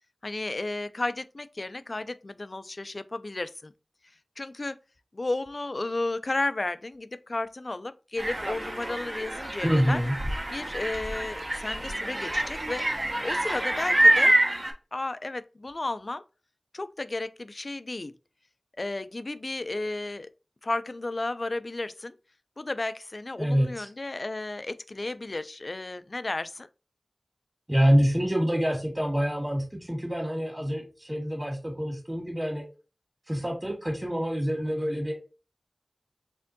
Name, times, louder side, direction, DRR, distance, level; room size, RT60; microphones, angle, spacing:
voice 1, 0.2-3.7 4.4-4.8 5.1-10.0 10.5-12.9 13.2-14.3 14.9-16.2 16.7-18.1 18.8-20.3 20.6-22.2 22.6-26.7, left 2 dB, 60° left, 0.3 m, -33 dB
sound 1, 8.2-14.7, right 1 dB, 50° right, 0.8 m, -26 dB
voice 2, 9.6-10.1 23.4-23.9 27.7-32.6 33.3-35.1, equal, 25° right, 1.7 m, -26 dB
4.3 x 3.6 x 2.7 m
wide cardioid pair, 60°, 0 cm